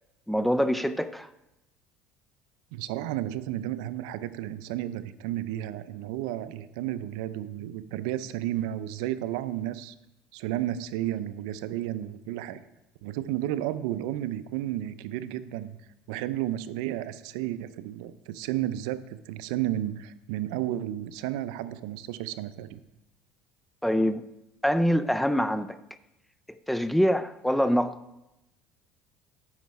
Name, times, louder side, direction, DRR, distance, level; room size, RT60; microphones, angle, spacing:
voice 1, 0.3-1.3 23.8-24.2 24.6-25.8 26.7-28.0, equal, 5° left, 0.4 m, -24 dB
voice 2, 2.7-9.9 10.3-12.6 13.0-15.8 16.1-22.8, right 13 dB, 85° right, 0.5 m, -32 dB
9.6 x 6.2 x 4.7 m
supercardioid pair, 115°, 3 cm